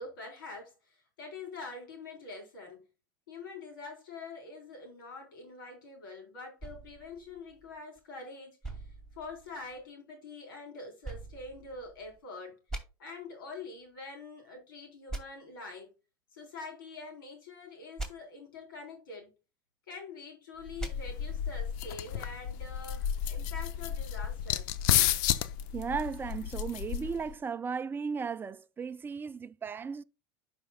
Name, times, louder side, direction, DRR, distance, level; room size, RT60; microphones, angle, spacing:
voice 1, 0.0-2.8 3.3-12.6 13.0-15.9 16.3-19.3 19.9-24.7, left 3 dB, 80° left, 3.7 m, -45 dB
sound 1, 6.6-8.0 8.6-9.9 11.0-12.2 12.7-12.8 15.1-15.2 18.0-18.1 20.8-20.9, right 2 dB, 5° left, 2.3 m, -42 dB
sound 2, 20.7-27.3, left 11 dB, 65° left, 0.6 m, -32 dB
voice 2, 25.7-30.0, right 6 dB, 20° right, 0.5 m, -35 dB
11.5 x 5.2 x 2.2 m
hypercardioid pair, 90°, 11 cm